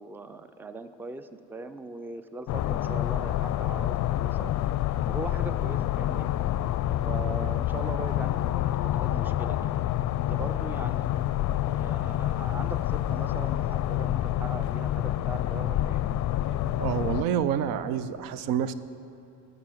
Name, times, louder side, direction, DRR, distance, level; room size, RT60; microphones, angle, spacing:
voice 1, 0.0-4.5 5.1-6.3 7.1-9.7 10.2-11.1 11.7-16.0, right 3 dB, 5° right, 11 dB, 0.4 m, -40 dB
sound 1, 2.5-17.2, left 13 dB, 55° left, 0.5 m, -28 dB
voice 2, 16.8-18.7, right 9 dB, 80° right, 14 dB, 0.6 m, -28 dB
12.5 x 6.3 x 7.7 m, 2.8 s
cardioid pair, 95°, 35 cm